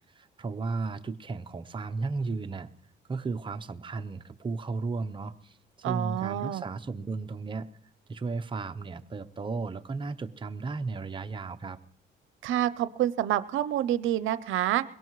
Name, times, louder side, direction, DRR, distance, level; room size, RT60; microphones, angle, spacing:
voice 1, 0.2-2.7 3.1-7.7 8.1-11.8, right 4 dB, 25° right, 8 dB, 0.7 m, -34 dB
voice 2, 5.8-6.6 12.4-14.8, right 12 dB, 80° right, 15 dB, 0.6 m, -28 dB
22.0 x 17.5 x 3.1 m, 0.73 s
cardioid pair, 90°, 20 cm